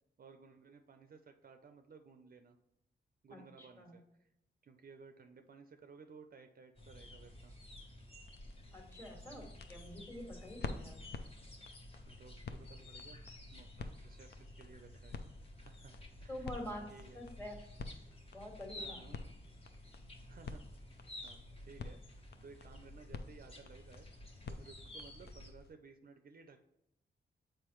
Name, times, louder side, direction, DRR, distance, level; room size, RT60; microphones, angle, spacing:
voice 1, 0.2-2.6 3.2-4.0 4.6-7.5 9.3-9.5 10.8-11.0 12.1-13.2 13.5-15.9 16.2-16.4 16.9-17.3 18.8-19.3 20.3-20.6 21.2-24.1 24.5-26.6, right 5 dB, 50° right, 6 dB, 0.5 m, -58 dB
voice 2, 3.3-3.9 8.7-11.0 16.3-16.9 17.1-17.6 18.3-19.0, left 1 dB, 15° left, 1 dB, 1.6 m, -47 dB
sound 1, 6.8-25.5, left 1 dB, 30° left, 1.0 m, -53 dB
sound 2, 8.2-25.7, left 4 dB, 60° left, 0.5 m, -50 dB
6.8 x 4.5 x 3.0 m, 0.84 s
wide cardioid pair, 100°, 19 cm